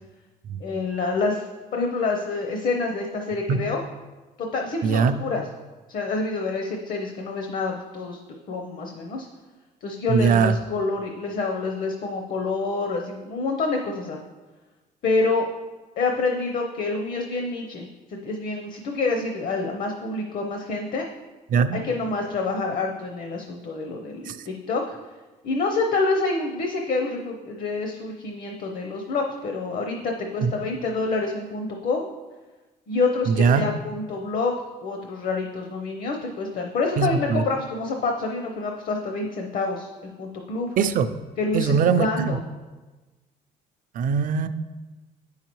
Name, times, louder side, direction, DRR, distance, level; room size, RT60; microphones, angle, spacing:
voice 1, 0.6-1.4 1.7-3.8 4.4-5.4 5.9-8.2 8.5-9.3 9.8-14.2 15.0-15.5 16.0-21.1 21.7-24.8 25.4-32.1 32.9-39.9 40.2-40.7 41.4-42.4, left 3 dB, 55° left, 2 dB, 0.8 m, -27 dB
voice 2, 4.8-5.2 10.1-10.6 21.5-21.8 24.3-24.4 30.4-30.5 33.3-33.7 37.0-37.4 40.8-41.1 41.5-42.4 43.9-44.5, right 6 dB, 55° right, 11 dB, 0.4 m, -21 dB
8.0 x 5.7 x 3.1 m, 1.2 s
cardioid pair, 110°, 17 cm